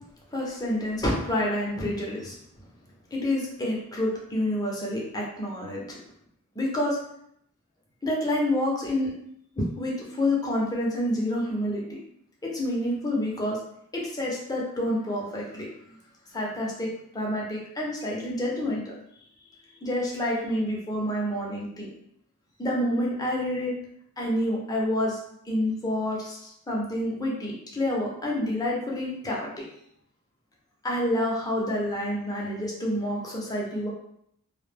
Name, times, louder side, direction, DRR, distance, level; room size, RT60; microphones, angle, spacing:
voice 1, 0.3-2.3 3.1-6.0 6.6-7.0 8.0-9.1 9.6-12.0 12.4-13.6 13.9-15.7 16.3-19.0 19.8-21.9 22.6-23.7 24.2-25.2 25.4-29.6 30.8-33.9, left 1 dB, 15° left, -3 dB, 0.6 m, -28 dB
2.1 x 2.0 x 3.3 m, 0.71 s
head